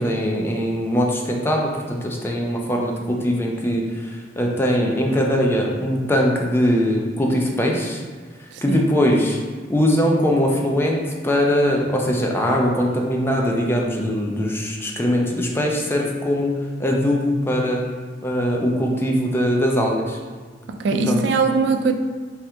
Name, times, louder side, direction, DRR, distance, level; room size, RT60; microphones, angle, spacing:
voice 1, 0.0-8.0 8.6-9.4 9.7-17.9 18.2-20.2 21.0-21.2, equal, 15° left, -1 dB, 0.4 m, -21 dB
voice 2, 8.5-8.8 20.7-21.9, right 4 dB, 75° right, 6 dB, 0.3 m, -21 dB
3.3 x 2.9 x 3.5 m, 1.5 s
head